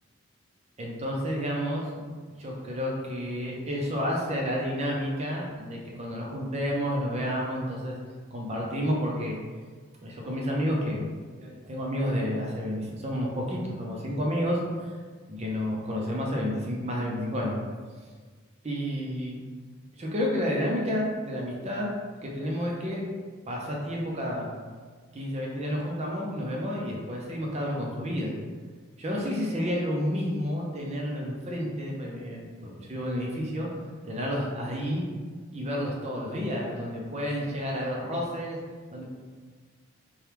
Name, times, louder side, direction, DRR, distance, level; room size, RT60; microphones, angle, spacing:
voice 1, 0.8-1.9 2.4-8.0 8.3-9.4 10.0-11.1 11.4-14.6 15.3-17.6 18.6-19.4 20.0-21.9 22.2-23.0 23.5-24.5 25.1-28.3 29.0-33.7 34.0-35.1 35.5-38.6 38.9-39.0, equal, 30° right, -2 dB, 0.5 m, -30 dB
2.9 x 2.3 x 3.3 m, 1.5 s
head